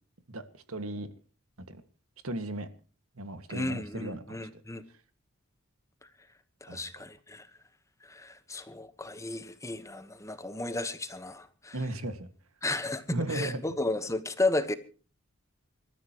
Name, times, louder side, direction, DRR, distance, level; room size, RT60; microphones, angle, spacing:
voice 1, 0.3-1.1 1.7-1.8 2.2-2.7 3.2-4.6 6.7-6.8 11.7-12.3 13.1-13.6, right 2 dB, 80° right, 2.0 m, -36 dB
voice 2, 3.5-4.8 6.6-7.5 8.0-11.7 12.6-14.8, left 2 dB, 15° left, 1.2 m, -33 dB
28.0 x 13.5 x 3.1 m
head